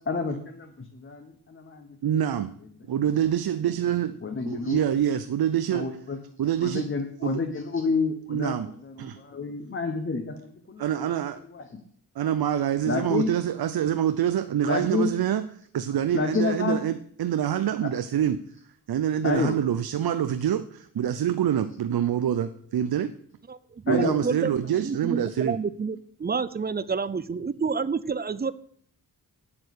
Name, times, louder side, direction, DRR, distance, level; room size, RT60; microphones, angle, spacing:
voice 1, 0.1-1.9 4.2-4.8 5.7-6.2 6.6-8.6 8.8-11.1 11.5-11.6 12.9-13.3 14.7-15.1 16.1-16.8 19.2-19.5 23.9-24.1, left 4 dB, 30° left, 6 dB, 1.0 m, -29 dB
voice 2, 2.0-2.5 2.9-6.0 6.4-7.4 8.3-8.7 9.0-9.2 10.8-11.4 12.2-15.5 15.7-18.4 18.9-23.1 23.9-25.6, right 10 dB, 70° right, 11 dB, 0.7 m, -26 dB
voice 3, 23.5-28.5, right 5 dB, 25° right, 17 dB, 0.4 m, -29 dB
8.8 x 8.7 x 8.2 m, 0.63 s
wide cardioid pair, 180°, 38 cm